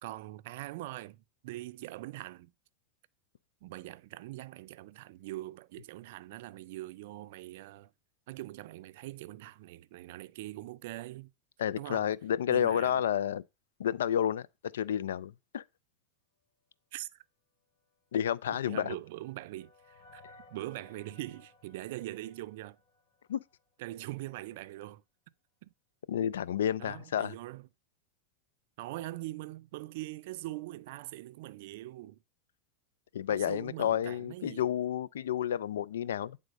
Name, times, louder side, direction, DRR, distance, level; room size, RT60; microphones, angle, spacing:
voice 1, 0.0-2.5 3.6-7.9 8.3-11.3 11.8-12.1 12.5-13.0 16.9-17.2 18.5-20.2 20.5-22.8 23.8-25.0 25.6-25.7 26.8-27.7 28.8-32.2 33.3-34.7, right 17 dB, 70° right, 0.4 m, -42 dB
voice 2, 11.6-13.4 13.8-14.5 14.7-15.6 18.1-19.0 23.3-23.4 26.1-27.3 33.1-36.4, left 9 dB, 85° left, 0.4 m, -30 dB
sound 1, 18.7-23.7, left 2 dB, 50° left, 3.2 m, -60 dB
9.1 x 3.6 x 5.1 m
hypercardioid pair, 110°, 0 cm